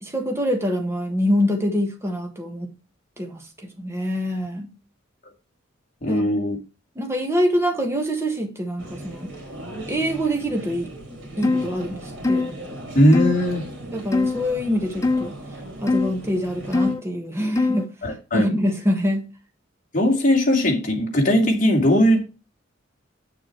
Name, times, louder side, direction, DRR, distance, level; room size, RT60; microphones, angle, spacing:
voice 1, 0.0-2.7 3.2-3.4 3.8-4.7 6.1-6.4 7.0-9.3 9.9-12.5 13.9-15.4 15.8-17.9 18.3-19.3, equal, 15° right, 1.4 m, -25 dB
voice 2, 6.0-6.6 12.9-13.6 18.0-18.5 19.9-22.2, equal, 40° left, 2.5 m, -19 dB
sound 1, 8.8-16.9, right 1 dB, 70° right, 3.4 m, -38 dB
sound 2, 11.4-11.7 12.2-12.5 13.1-13.3 14.1-14.4 15.0-15.3 15.9-16.1 16.7-17.0 17.6-17.9, left 3 dB, 15° left, 1.0 m, -21 dB
8.5 x 6.8 x 4.5 m
head